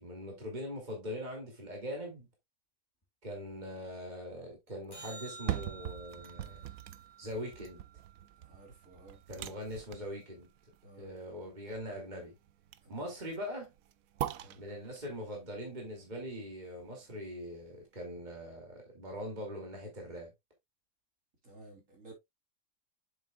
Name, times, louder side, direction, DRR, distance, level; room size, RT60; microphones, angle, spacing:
voice 1, 0.0-2.3 3.2-6.6 7.2-7.8 9.3-10.5 11.0-12.3 12.9-13.7 14.6-20.3, equal, 30° right, 2.7 m, -42 dB
sound 1, 4.9-9.4 15.9-16.0, right 4 dB, 15° left, 2.0 m, -52 dB
sound 2, 5.2-17.2 17.7-17.8, right 11 dB, 90° right, 1.1 m, -43 dB
voice 2, 8.5-9.2 10.8-11.1 12.8-13.1 14.4-14.6 21.4-22.1, right 2 dB, 65° right, 3.9 m, -54 dB
7.7 x 7.3 x 2.3 m
omnidirectional pair, 1.4 m